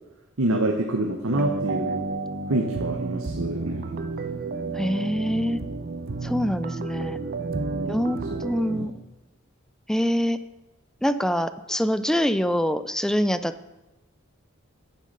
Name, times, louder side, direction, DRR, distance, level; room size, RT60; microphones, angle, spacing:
voice 1, 0.4-2.0 2.5-4.0 7.5-8.0 8.3-8.4 8.7-8.9, right 1 dB, 70° right, 2 dB, 1.1 m, -27 dB
sound 1, 1.3-8.9, right 3 dB, 45° right, 0.6 m, -31 dB
voice 2, 4.7-5.6 6.2-7.2 7.9-8.9 9.9-10.4 11.0-13.7, equal, 5° left, 12 dB, 0.4 m, -25 dB
9.6 x 7.7 x 5.5 m, 1.0 s
head